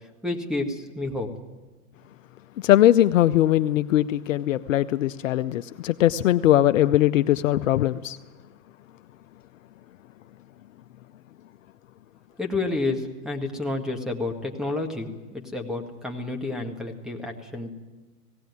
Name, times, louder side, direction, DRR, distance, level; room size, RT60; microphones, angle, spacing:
voice 1, 0.2-1.3 12.4-17.7, left 2 dB, ahead, 4 dB, 1.6 m, -30 dB
voice 2, 2.6-8.2, left 13 dB, 55° left, 12 dB, 0.6 m, -20 dB
17.5 x 17.5 x 9.5 m, 1.3 s
hypercardioid pair, 140°, 47 cm